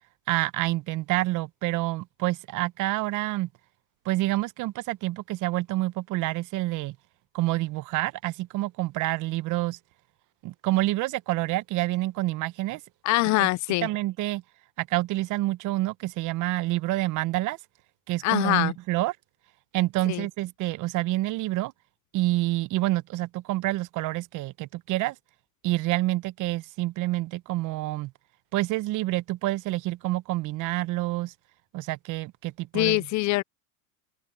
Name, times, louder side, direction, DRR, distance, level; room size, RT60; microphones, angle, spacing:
voice 1, 0.3-3.5 4.0-6.9 7.3-9.8 10.4-12.8 13.4-13.5 13.8-14.4 14.8-17.6 18.1-19.1 19.7-21.7 22.1-25.1 25.6-28.1 28.5-31.3 31.7-33.1, right 18 dB, 45° right, 1.2 m, -28 dB
voice 2, 13.0-13.9 18.2-18.7 20.1-20.3 32.7-33.4, left 20 dB, 40° left, 0.8 m, -23 dB
hypercardioid pair, 105°, 43 cm